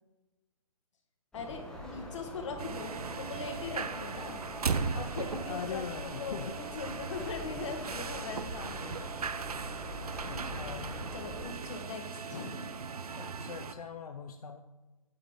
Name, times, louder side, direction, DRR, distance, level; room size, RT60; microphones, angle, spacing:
voice 1, 1.3-4.4 4.9-9.4 10.3-10.8 11.1-12.6, left 4 dB, 55° left, 4 dB, 1.7 m, -41 dB
sound 1, 1.3-11.5, left 1 dB, 5° left, 1.1 m, -44 dB
sound 2, 2.6-13.7, right 5 dB, 85° right, 0.7 m, -38 dB
voice 2, 5.3-6.5 8.6-9.0 10.2-11.1 13.2-14.6, left 6 dB, 85° left, 6 dB, 0.6 m, -42 dB
8.7 x 8.2 x 3.7 m, 1.1 s
hypercardioid pair, 155°, 19 cm